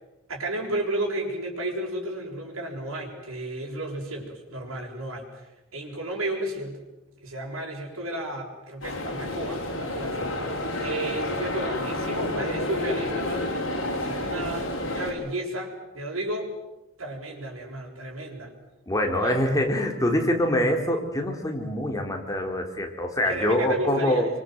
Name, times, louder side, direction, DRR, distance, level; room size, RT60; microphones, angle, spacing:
voice 1, 0.3-5.5 5.7-6.8 7.2-10.4 10.8-13.5 14.0-16.6 17.0-18.5 19.2-19.4 23.2-24.3, right 1 dB, 85° right, 0 dB, 6.9 m, -33 dB
sound 1, 8.8-15.1, left 1 dB, 65° left, 6.1 m, -30 dB
voice 2, 18.9-24.3, left 1 dB, 15° left, 2 dB, 3.5 m, -25 dB
25.5 x 25.0 x 7.9 m, 0.99 s
head